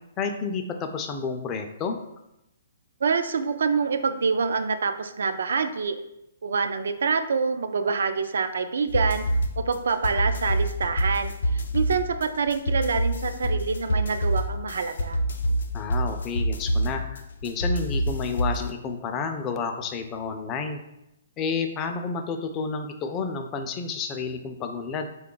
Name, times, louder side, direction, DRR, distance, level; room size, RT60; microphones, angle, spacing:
voice 1, 0.2-2.0 15.7-20.8 21.4-25.1, left 5 dB, 20° left, 5 dB, 0.3 m, -30 dB
voice 2, 3.0-6.0 6.4-9.2 9.6-15.2, right 5 dB, 80° right, 9 dB, 0.3 m, -26 dB
sound 1, 8.9-18.7, equal, 80° left, 0.4 m, -27 dB
3.4 x 2.3 x 3.7 m, 0.87 s
hypercardioid pair, 160°, 0 cm